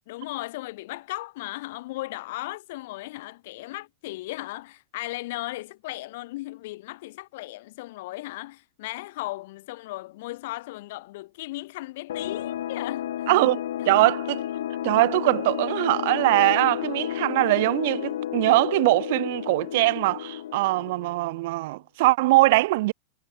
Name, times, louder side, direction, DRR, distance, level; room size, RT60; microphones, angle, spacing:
voice 1, 0.1-13.3 13.8-14.0, left 19 dB, 55° left, 3.1 m, -36 dB
sound 1, 12.1-21.4, left 11 dB, 85° left, 1.2 m, -32 dB
voice 2, 13.3-14.4 14.8-22.9, right 20 dB, 55° right, 1.4 m, -22 dB
supercardioid pair, 160°, 0 cm